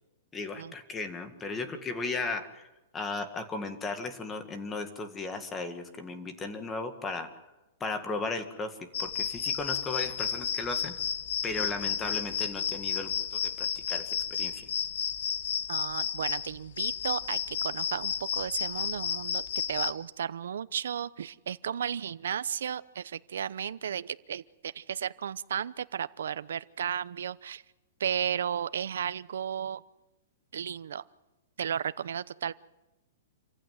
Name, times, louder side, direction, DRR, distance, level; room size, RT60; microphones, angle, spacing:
voice 1, 0.3-2.7 2.9-7.3 7.8-11.0 11.4-14.7, left 3 dB, 10° left, 8 dB, 1.9 m, -36 dB
sound 1, 8.9-19.9, left 8 dB, 70° left, 1.6 m, -32 dB
voice 2, 15.7-19.4 19.7-27.6 28.0-29.8 30.5-31.0 31.6-32.5, right 8 dB, 80° right, 15 dB, 0.8 m, -34 dB
27.5 x 15.5 x 9.5 m, 1.0 s
hypercardioid pair, 165°, 0 cm